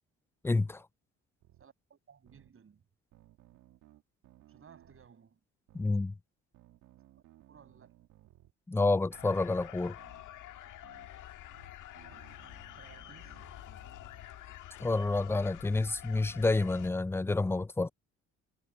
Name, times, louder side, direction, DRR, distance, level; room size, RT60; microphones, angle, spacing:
voice 1, 0.4-0.8 5.7-6.1 8.7-10.0 14.8-17.9, left 3 dB, 10° left, 0.4 m, -29 dB
sound 1, 1.4-1.7 2.3-2.5 3.1-5.1 5.7-5.9 6.5-8.5 9.1-9.4 10.0-10.2 10.8-11.1 11.5-14.3, right 15 dB, 90° right, 1.8 m, -60 dB
voice 2, 1.6-2.8 4.5-5.4 7.5-8.0 12.0-13.4, right 6 dB, 45° right, 7.5 m, -59 dB
sound 2, 9.1-16.9, left 13 dB, 85° left, 1.7 m, -48 dB
cardioid pair, 90°, 30 cm